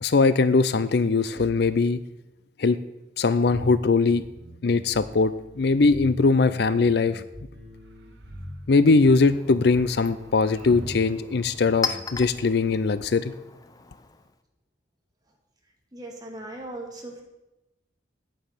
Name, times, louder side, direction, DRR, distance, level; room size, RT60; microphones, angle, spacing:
voice 1, 0.0-2.0 2.6-2.8 3.2-4.2 4.6-5.3 5.6-7.2 8.7-13.3, left 4 dB, 60° left, 14 dB, 0.5 m, -21 dB
sound 1, 3.5-13.1, equal, 60° right, 4.9 m, -43 dB
sound 2, 7.7-8.6 10.1-11.3, right 1 dB, 80° right, 1.6 m, -46 dB
Chink clink, 8.9-14.4, left 5 dB, 20° left, 0.7 m, -38 dB
voice 2, 15.9-17.2, right 1 dB, 20° right, 0 dB, 2.4 m, -38 dB
9.3 x 9.2 x 6.6 m, 0.98 s
head